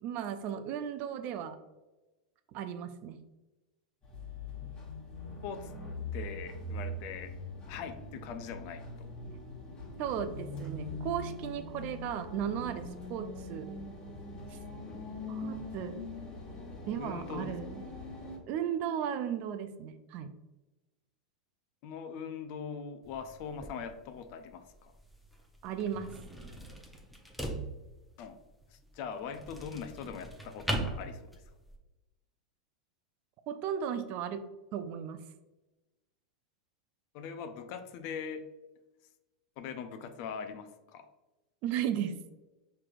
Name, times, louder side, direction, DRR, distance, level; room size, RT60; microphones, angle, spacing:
voice 1, 0.0-1.6 2.5-3.2 10.0-13.7 14.5-14.6 15.3-16.0 16.9-17.8 18.5-20.3 25.6-26.2 33.5-34.4 34.7-35.2 41.6-42.2, right 9 dB, 45° right, 9 dB, 0.4 m, -35 dB
sound 1, 4.0-18.4, left 2 dB, 30° left, 1.4 m, -42 dB
voice 2, 6.1-7.4 7.7-9.1 17.0-17.5 21.8-24.9 28.2-28.4 28.7-31.4 37.1-38.5 39.6-41.1, left 6 dB, 50° left, 8 dB, 0.5 m, -41 dB
sound 2, 23.0-31.8, right 1 dB, ahead, 0.8 m, -41 dB
5.8 x 3.3 x 2.4 m, 1.1 s
hypercardioid pair, 90°, 4 cm